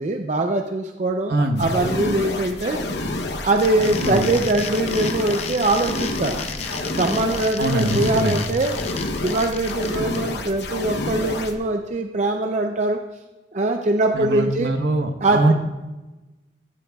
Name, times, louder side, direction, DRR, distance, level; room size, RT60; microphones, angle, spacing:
voice 1, 0.0-2.8 3.4-6.4 6.9-8.7 9.2-13.0 13.5-14.7 15.2-15.5, right 2 dB, 40° right, 4 dB, 0.5 m, -22 dB
voice 2, 1.3-1.7 4.0-4.2 7.6-8.4 14.1-15.5, right 1 dB, 70° right, 4 dB, 1.0 m, -22 dB
sound 1, 1.5-11.5, left 2 dB, 70° left, 0.9 m, -29 dB
sound 2, 3.4-10.2, left 5 dB, 40° left, 0.6 m, -33 dB
14.5 x 10.5 x 2.3 m, 1.1 s
head